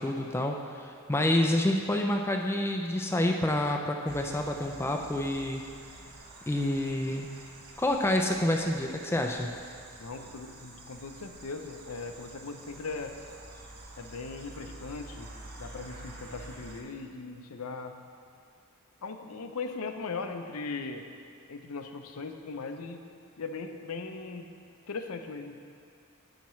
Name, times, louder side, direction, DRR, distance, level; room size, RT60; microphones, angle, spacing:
voice 1, 0.0-5.6 6.5-7.3 7.8-9.6, left 1 dB, 10° left, 2 dB, 0.3 m, -28 dB
sound 1, 4.1-16.8, right 2 dB, 45° right, 0.9 m, -48 dB
voice 2, 10.0-13.1 14.0-15.3 15.6-17.9 19.0-21.1 21.5-23.0 23.4-24.5 24.9-25.6, left 4 dB, 75° left, 6 dB, 0.6 m, -39 dB
10.0 x 8.2 x 3.1 m, 2.3 s
head